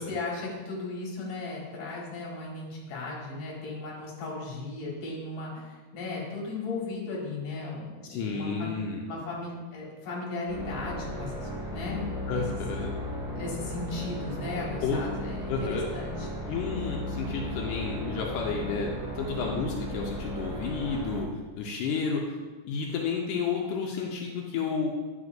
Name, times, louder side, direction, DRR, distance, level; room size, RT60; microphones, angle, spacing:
voice 1, 0.0-8.8 9.1-12.4 13.4-16.3, left 3 dB, 50° left, -4 dB, 2.3 m, -36 dB
voice 2, 8.1-9.0 12.3-13.0 14.8-15.0 15.5-15.8 16.5-21.3 21.5-22.4 22.7-24.9, left 5 dB, 85° left, -1 dB, 2.2 m, -31 dB
sound 1, 10.5-21.2, left 1 dB, 5° right, 0.6 m, -35 dB
9.6 x 5.1 x 2.6 m, 1.3 s
omnidirectional pair, 3.7 m